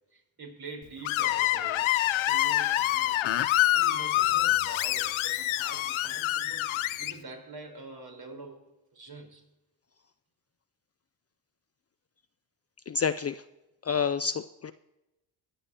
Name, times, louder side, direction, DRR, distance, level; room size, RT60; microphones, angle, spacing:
voice 1, 0.1-3.4 3.7-9.4, right 3 dB, 50° right, 4.4 m, -46 dB
Screech, 1.0-7.1, left 15 dB, 80° left, 0.7 m, -26 dB
voice 2, 12.9-13.4 13.8-14.7, left 6 dB, 35° left, 0.4 m, -29 dB
21.5 x 8.9 x 2.8 m
cardioid pair, 75°, 48 cm